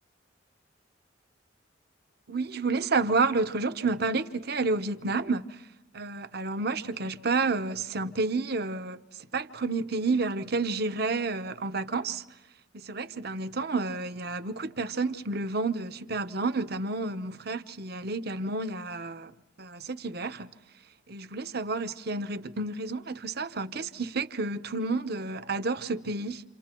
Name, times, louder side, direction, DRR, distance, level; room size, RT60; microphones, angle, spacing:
voice 1, 2.3-5.6 5.9-9.0 9.3-12.2 12.7-19.3 19.6-20.5 21.1-26.4, right 3 dB, 55° right, 1.0 m, -30 dB
29.0 x 28.5 x 4.5 m
head